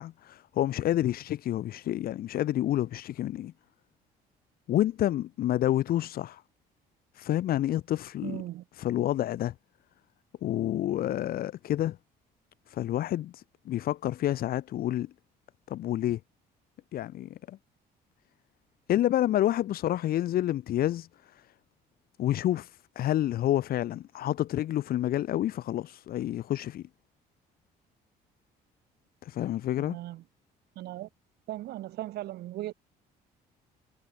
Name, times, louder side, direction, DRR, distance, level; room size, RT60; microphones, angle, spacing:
voice 1, 0.0-3.5 4.7-6.4 7.1-8.4 8.8-9.5 10.4-12.0 12.7-15.1 15.7-16.2 16.9-17.6 18.9-21.4 22.2-26.8 29.2-30.0, left 13 dB, 60° left, 1.2 m, -29 dB
voice 2, 8.2-8.6 29.8-30.2 30.8-31.1 31.5-32.7, right 15 dB, 75° right, 2.3 m, -37 dB
cardioid pair, 110°, 17 cm